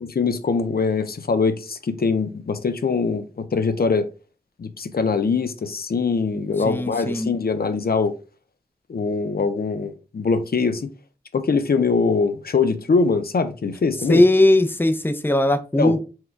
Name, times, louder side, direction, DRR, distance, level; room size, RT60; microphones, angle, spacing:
voice 1, 0.0-4.1 4.6-8.1 8.9-10.9 11.3-14.2 15.8-16.0, left 4 dB, 65° left, 0.5 m, -22 dB
voice 2, 6.6-7.3 14.1-16.0, left 1 dB, 15° left, 0.6 m, -18 dB
4.4 x 2.2 x 4.5 m
cardioid pair, 45°, 17 cm